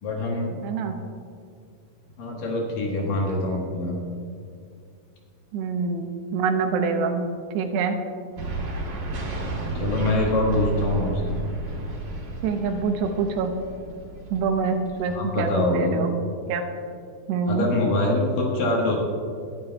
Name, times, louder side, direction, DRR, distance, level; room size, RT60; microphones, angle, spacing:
voice 1, 0.0-0.6 2.2-4.0 9.7-11.4 15.1-16.0 17.5-19.0, left 1 dB, 65° left, -1 dB, 2.7 m, -24 dB
voice 2, 0.6-1.0 5.5-7.2 7.5-8.0 12.4-13.5 14.3-16.1 16.5-16.6 17.3-17.7, right 5 dB, 80° right, 5 dB, 2.9 m, -25 dB
sound 1, 8.4-15.4, right 2 dB, 55° right, 3.3 m, -32 dB
20.0 x 11.5 x 2.3 m, 2.3 s
omnidirectional pair, 4.9 m